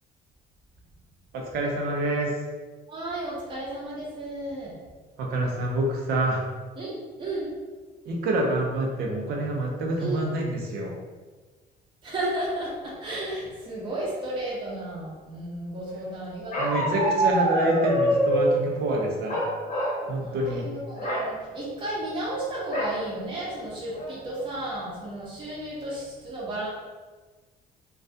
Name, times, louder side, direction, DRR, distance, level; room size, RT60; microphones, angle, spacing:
voice 1, 1.3-2.3 5.2-6.5 8.1-10.9 16.6-19.4 20.1-20.7, right 1 dB, 70° right, 0 dB, 0.6 m, -27 dB
voice 2, 2.9-4.7 6.8-7.5 10.0-10.2 12.0-17.2 17.6-17.7 20.1-26.7, right 1 dB, 30° right, -6 dB, 0.7 m, -33 dB
Bark, 16.5-18.6 19.3-20.0 20.3-20.6 20.9-21.3 22.7-23.0 23.5-23.6 23.9-24.4, right 1 dB, 45° left, 0.7 m, -25 dB
2.3 x 2.2 x 2.6 m, 1.3 s
cardioid pair, 110°, 17 cm